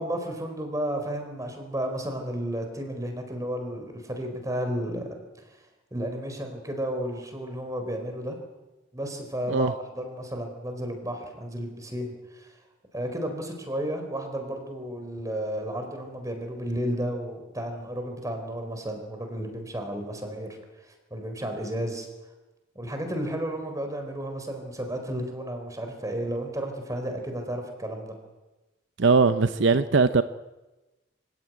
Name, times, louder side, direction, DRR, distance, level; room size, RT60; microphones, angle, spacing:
voice 1, 0.0-5.1 5.9-8.4 8.9-12.5 12.9-22.1 22.7-28.1, right 1 dB, 15° right, 4.5 m, -32 dB
voice 2, 29.0-30.2, right 4 dB, 70° right, 0.7 m, -20 dB
25.0 x 16.5 x 9.4 m
head